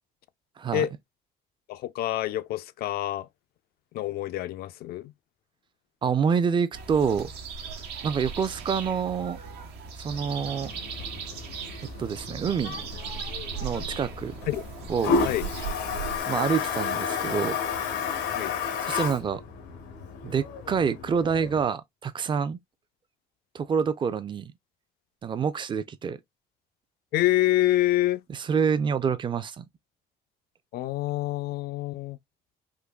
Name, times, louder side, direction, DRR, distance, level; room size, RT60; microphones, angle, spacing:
voice 1, 1.7-3.3 3.9-5.1 14.5-14.6 15.2-15.5 18.3-18.5 27.1-28.2 30.7-32.2, left 14 dB, 65° left, 0.4 m, -27 dB
voice 2, 6.0-7.3 8.0-9.4 10.0-10.7 12.0-12.8 13.6-14.4 14.9-15.2 16.3-17.6 18.8-19.4 20.2-22.6 23.5-24.5 25.2-26.2 28.3-29.6, right 6 dB, 30° right, 0.4 m, -27 dB
sound 1, 6.7-16.2, right 6 dB, 80° right, 0.9 m, -38 dB
Toilet flush, 10.1-21.6, left 5 dB, 90° left, 0.9 m, -32 dB
3.8 x 2.7 x 2.2 m
cardioid pair, 110°, 17 cm